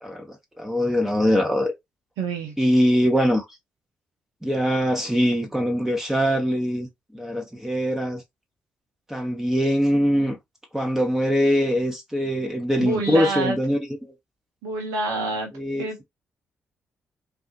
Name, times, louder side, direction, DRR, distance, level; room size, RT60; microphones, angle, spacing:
voice 1, 0.0-1.7 2.6-3.5 4.4-6.9 7.1-8.2 9.1-10.4 10.7-14.1 15.6-16.0, equal, 5° right, 0.9 m, -22 dB
voice 2, 2.2-2.7 12.8-13.6 14.6-15.5 15.8-16.0, right 3 dB, 75° right, 0.6 m, -27 dB
2.4 x 2.4 x 2.3 m
hypercardioid pair, 45°, 6 cm